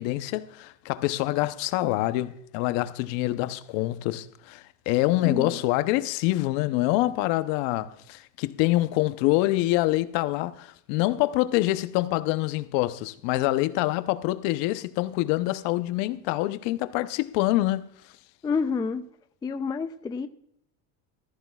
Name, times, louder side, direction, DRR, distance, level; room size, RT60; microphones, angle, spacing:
voice 1, 0.0-17.9, left 17 dB, 70° left, 0.8 m, -26 dB
voice 2, 5.2-5.6 18.4-19.0 19.4-20.3, left 5 dB, 10° left, 0.3 m, -28 dB
14.5 x 14.0 x 2.3 m
supercardioid pair, 115°, 46 cm